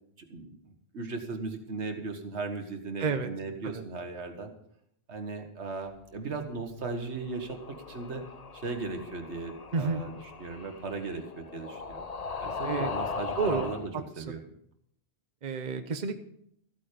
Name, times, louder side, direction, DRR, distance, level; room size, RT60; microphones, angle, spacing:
voice 1, 0.3-4.5 5.1-8.2 8.5-12.0 12.4-13.9 14.2-14.4, right 3 dB, 85° right, 5 dB, 1.8 m, -37 dB
sound 1, 7.1-13.9, left 5 dB, 40° left, 0.9 m, -39 dB
voice 2, 13.4-13.7 15.4-16.1, right 5 dB, 45° right, 8 dB, 1.0 m, -30 dB
14.5 x 8.9 x 5.1 m, 0.70 s
omnidirectional pair, 1.1 m